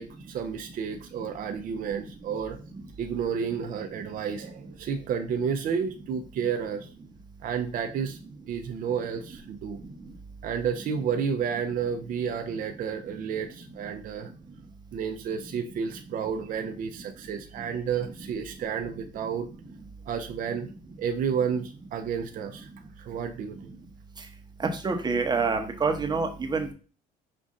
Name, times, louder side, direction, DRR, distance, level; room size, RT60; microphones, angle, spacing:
voice 1, 0.0-2.6 3.0-6.9 7.4-8.2 8.5-9.8 10.4-14.3 14.9-19.5 20.1-20.7 21.0-22.7 23.0-23.7, right 7 dB, 55° right, 6 dB, 0.5 m, -31 dB
voice 2, 24.8-26.7, right 4 dB, 25° right, 5 dB, 0.9 m, -26 dB
5.3 x 2.5 x 3.7 m, 0.36 s
cardioid pair, 110°, 17 cm